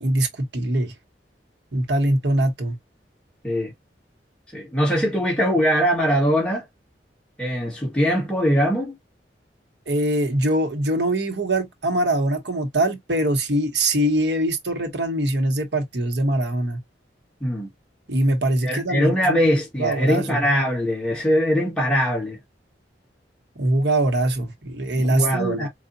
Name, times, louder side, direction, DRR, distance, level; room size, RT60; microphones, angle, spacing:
voice 1, 0.0-0.9 1.7-2.8 9.9-16.8 18.1-19.4 19.8-20.5 23.6-25.7, right 1 dB, 70° right, 1.2 m, -23 dB
voice 2, 4.5-6.6 7.4-9.0 17.4-17.7 18.6-22.4 25.0-25.7, equal, 5° left, 1.8 m, -22 dB
4.9 x 2.4 x 2.7 m
head